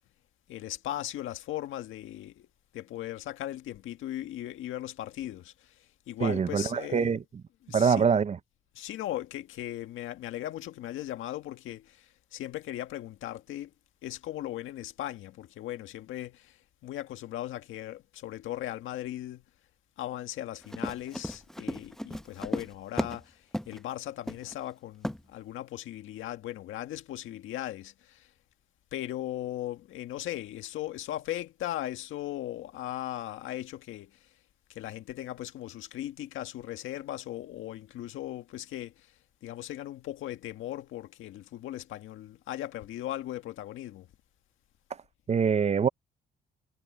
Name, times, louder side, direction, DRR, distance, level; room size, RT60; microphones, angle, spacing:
voice 1, 0.5-2.5 2.7-5.8 6.1-7.2 7.6-8.1 8.8-13.7 14.0-19.4 20.0-28.3 28.9-34.2 34.7-39.1 39.4-44.1, left 13 dB, 85° left, 1.8 m, -38 dB
voice 2, 6.2-7.2 7.7-8.4 45.3-45.9, right 6 dB, 35° right, 0.6 m, -24 dB
Run, 20.6-23.2 23.5-23.8 24.3-24.5 25.0-25.2, equal, ahead, 0.8 m, -34 dB
cardioid pair, 90°, 20 cm